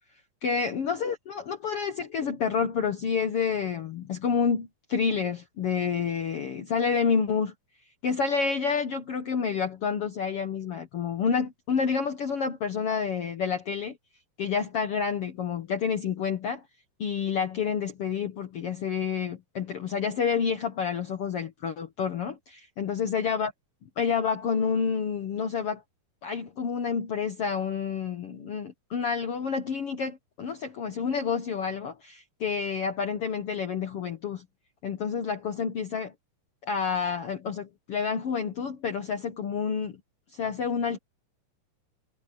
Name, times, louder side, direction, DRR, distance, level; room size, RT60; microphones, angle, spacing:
voice 1, 0.4-7.5 8.0-14.0 14.4-16.6 17.0-23.5 24.0-25.8 26.2-34.4 34.8-36.1 36.6-40.0 40.3-41.0, left 6 dB, 70° left, 1.4 m, -29 dB
omnidirectional pair, 4.4 m